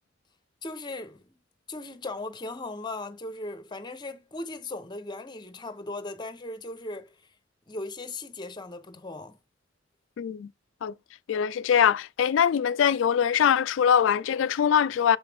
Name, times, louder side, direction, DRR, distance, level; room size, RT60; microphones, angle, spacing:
voice 1, 0.6-1.2 1.7-7.1 7.7-9.4, left 2 dB, 25° left, 0.8 m, -37 dB
voice 2, 10.2-10.5 10.8-10.9 11.3-15.2, left 8 dB, 75° left, 0.3 m, -22 dB
6.7 x 4.8 x 3.5 m
head